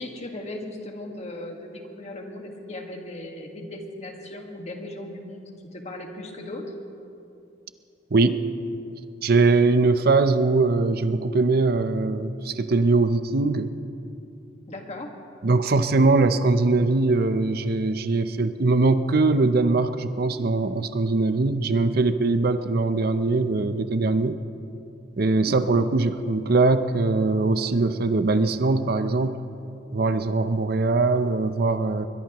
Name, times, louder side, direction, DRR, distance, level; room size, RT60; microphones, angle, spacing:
voice 1, 0.0-6.6 14.7-15.1 25.2-25.6, left 1 dB, 35° left, 2 dB, 1.7 m, -37 dB
voice 2, 9.2-13.7 15.4-24.4 25.2-29.4 29.9-32.1, right 3 dB, 55° right, 11 dB, 0.6 m, -21 dB
22.0 x 21.5 x 3.0 m, 2.7 s
head